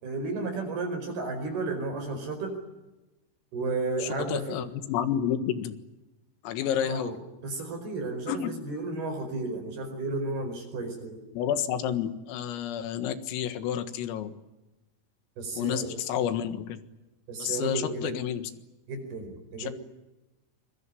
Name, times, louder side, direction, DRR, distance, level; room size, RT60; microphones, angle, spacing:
voice 1, 0.0-2.6 3.5-4.6 6.7-7.2 7.4-11.2 15.4-16.0 17.3-18.1 18.9-19.7, right 3 dB, 50° right, 6 dB, 6.4 m, -33 dB
voice 2, 4.0-5.8 6.4-7.2 8.3-8.5 11.3-14.3 15.6-16.8 17.4-18.4 19.6-19.7, left 9 dB, 80° left, 11 dB, 4.3 m, -30 dB
25.5 x 23.0 x 10.0 m, 1.0 s
omnidirectional pair, 6.0 m